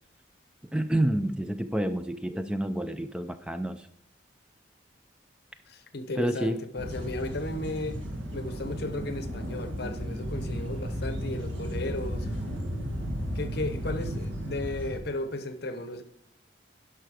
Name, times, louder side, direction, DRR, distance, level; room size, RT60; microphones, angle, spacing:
voice 1, 0.6-3.9 6.2-6.6, right 1 dB, 5° right, 0.3 m, -29 dB
voice 2, 5.7-8.0 8.3-12.4 13.3-16.0, left 2 dB, 55° left, 0.9 m, -35 dB
sound 1, 6.8-15.0, equal, 80° right, 1.9 m, -34 dB
11.0 x 5.8 x 4.9 m
head